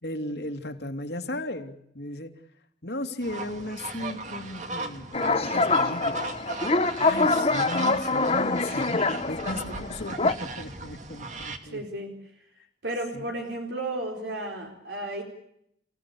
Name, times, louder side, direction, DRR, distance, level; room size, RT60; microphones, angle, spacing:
voice 1, 0.0-2.3 2.8-6.3 7.0-11.8 13.1-13.3, left 1 dB, 70° left, 5 dB, 2.8 m, -36 dB
sound 1, 3.2-11.6, right 3 dB, 40° right, 2.4 m, -38 dB
sound 2, 5.1-10.3, left 3 dB, 35° left, 1.3 m, -25 dB
voice 2, 9.4-9.8 11.7-12.2 12.8-15.2, right 1 dB, 85° right, 2 dB, 4.2 m, -33 dB
29.5 x 16.5 x 8.6 m, 0.75 s
head